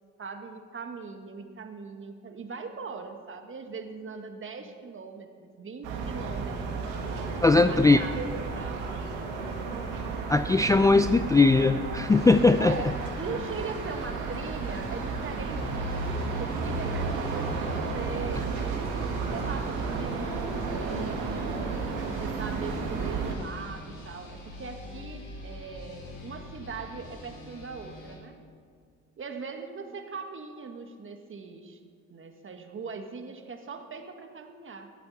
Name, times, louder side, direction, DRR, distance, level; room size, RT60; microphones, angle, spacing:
voice 1, 0.2-6.7 7.5-9.1 12.6-18.5 19.3-28.4 29.2-31.8 32.1-34.9, right 4 dB, 40° right, 6 dB, 1.5 m, -40 dB
sound 1, 5.8-23.3, right 4 dB, 80° right, 1.9 m, -32 dB
voice 2, 7.4-8.0 10.3-12.8, left 3 dB, 10° left, 10 dB, 0.3 m, -20 dB
sound 2, 12.1-28.2, left 1 dB, 80° left, 4.1 m, -45 dB
14.5 x 12.0 x 4.1 m, 2.1 s
supercardioid pair, 70°, 32 cm